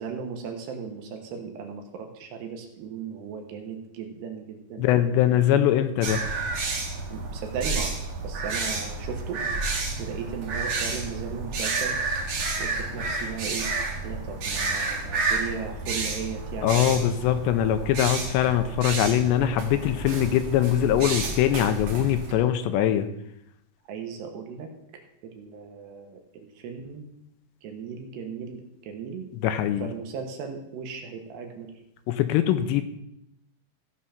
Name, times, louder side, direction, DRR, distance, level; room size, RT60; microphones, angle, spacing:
voice 1, 0.0-5.4 7.1-7.9 8.2-9.4 10.0-12.0 12.6-13.7 14.0-17.1 23.9-24.7 25.2-27.1 27.6-29.2 29.8-31.7, right 6 dB, 70° right, 3 dB, 3.1 m, -37 dB
voice 2, 4.8-6.2 16.6-23.1 29.4-29.9 32.1-32.8, left 11 dB, 85° left, 9 dB, 2.7 m, -22 dB
sound 1, 6.0-22.3, right 3 dB, 50° right, 2.1 m, -30 dB
16.0 x 5.5 x 5.8 m, 0.80 s
omnidirectional pair, 5.2 m